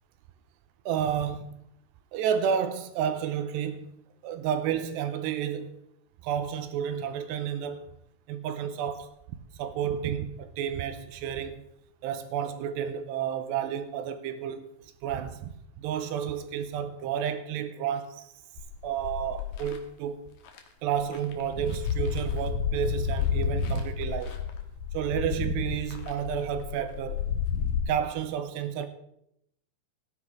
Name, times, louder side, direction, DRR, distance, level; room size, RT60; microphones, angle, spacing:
voice 1, 0.9-1.6 2.1-3.9 4.2-5.8 6.2-7.9 8.3-9.1 9.6-11.6 12.0-14.7 15.0-15.5 15.8-18.3 18.8-20.2 20.8-24.4 24.9-27.2 27.9-28.9, right 8 dB, 80° right, 2.7 m, -31 dB
sound 1, 18.6-19.8 20.5-20.6 20.9-27.8, left 7 dB, 85° left, 1.6 m, -31 dB
14.5 x 10.0 x 3.6 m
omnidirectional pair, 5.3 m